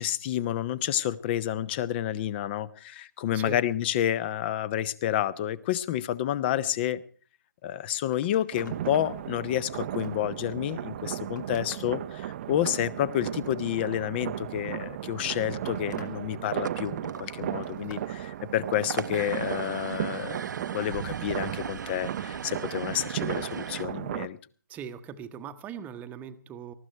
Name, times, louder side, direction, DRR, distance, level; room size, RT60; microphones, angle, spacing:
voice 1, 0.0-7.0 7.6-24.4, left 11 dB, 30° left, 19 dB, 0.9 m, -29 dB
voice 2, 3.3-3.6 24.7-26.7, right 7 dB, 15° right, 11 dB, 1.0 m, -40 dB
Telephone, 7.6-7.7 8.0-8.8 9.3-10.4 11.0-12.0 13.2-14.0 15.0-16.2 16.5-17.0 17.4-18.1 20.6-20.9 22.3-22.5, left 4 dB, 60° left, 2.8 m, -52 dB
sound 1, 8.5-24.3, right 12 dB, 35° right, 0.7 m, -35 dB
sound 2, 16.5-23.8, right 6 dB, 65° right, 0.9 m, -39 dB
19.0 x 15.0 x 4.5 m, 0.42 s
figure-of-eight pair, 140°, 11 cm